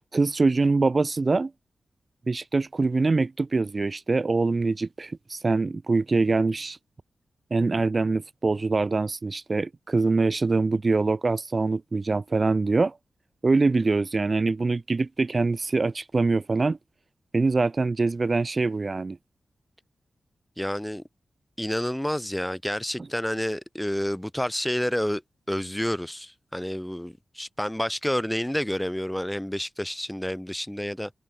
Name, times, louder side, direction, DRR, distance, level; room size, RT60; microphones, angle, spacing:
voice 1, 0.1-1.5 2.3-6.8 7.5-13.0 13.4-16.8 17.3-19.2, right 3 dB, 40° right, 0.6 m, -24 dB
voice 2, 20.6-21.0 21.6-25.2 25.5-31.1, equal, 5° left, 1.0 m, -29 dB
cardioid pair, 75°, 0 cm